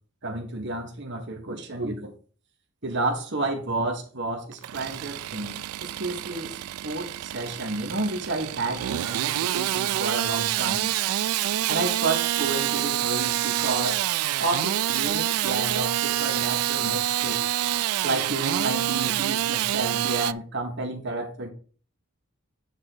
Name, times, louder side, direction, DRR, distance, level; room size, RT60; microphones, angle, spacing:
voice 1, 0.2-2.1 2.8-6.5 6.8-10.9 11.7-14.0 14.4-17.4 18.0-21.5, right 2 dB, 55° right, 3 dB, 1.5 m, -31 dB
Engine starting / Sawing, 4.5-20.3, right 13 dB, 90° right, 0.3 m, -27 dB
9.0 x 3.8 x 6.0 m, 0.39 s
head